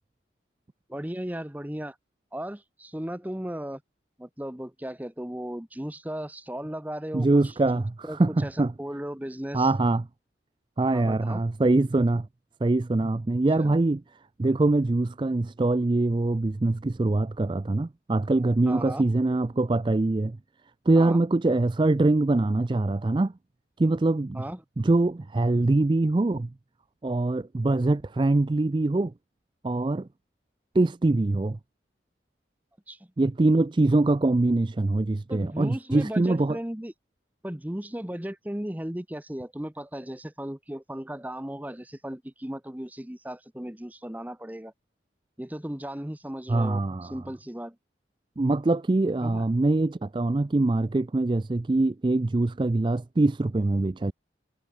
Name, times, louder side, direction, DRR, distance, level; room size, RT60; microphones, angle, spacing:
voice 1, 0.9-2.0 2.3-3.8 4.2-9.7 10.9-11.4 13.6-13.8 18.7-19.1 20.9-21.2 24.3-24.6 32.9-33.1 35.3-36.9 37.4-44.7 45.4-47.8 49.2-49.4, equal, 10° right, 0.9 m, -36 dB
voice 2, 7.1-8.7 9.5-10.1 10.8-12.3 12.6-14.0 14.4-20.4 20.9-23.3 23.8-24.4 24.8-26.5 27.0-29.1 29.6-30.1 30.7-31.6 33.2-36.6 46.5-47.2 48.4-54.1, right 2 dB, 25° right, 0.4 m, -23 dB
head